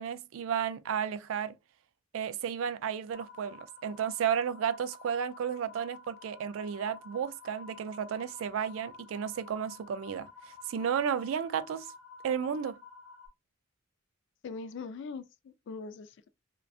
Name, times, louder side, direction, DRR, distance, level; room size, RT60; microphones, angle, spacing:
voice 1, 0.0-1.5 2.1-10.3 10.7-11.9 12.2-12.8, right 8 dB, 70° right, 0.3 m, -33 dB
sound 1, 3.1-13.3, left 5 dB, 85° left, 0.8 m, -51 dB
voice 2, 14.4-16.3, left 4 dB, 60° left, 0.3 m, -41 dB
2.5 x 2.2 x 2.4 m
head